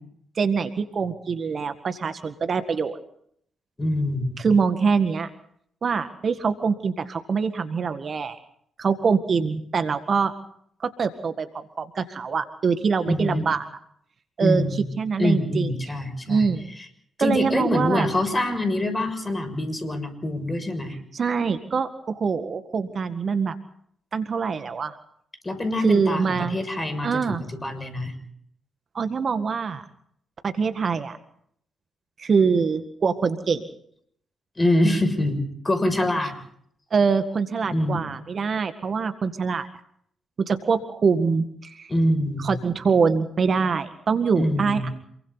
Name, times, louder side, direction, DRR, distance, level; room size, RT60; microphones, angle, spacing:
voice 1, 0.4-3.0 4.4-5.3 5.8-8.4 8.8-10.3 10.8-11.5 11.8-13.7 14.4-15.7 16.3-16.7 17.2-18.1 21.1-23.6 24.1-25.0 25.8-26.6 27.0-27.4 29.0-29.8 30.4-31.2 32.2-33.7 36.9-39.7 40.4-41.9 42.4-44.9, right 5 dB, 50° right, 9 dB, 1.8 m, -24 dB
voice 2, 3.8-4.5 13.1-13.4 14.4-14.9 15.2-16.5 17.2-21.0 25.4-28.1 34.6-36.3 37.7-38.1 41.9-42.6 44.4-44.9, left 1 dB, 25° left, 9 dB, 6.6 m, -25 dB
28.0 x 23.0 x 4.2 m, 0.66 s
hypercardioid pair, 40°, 0 cm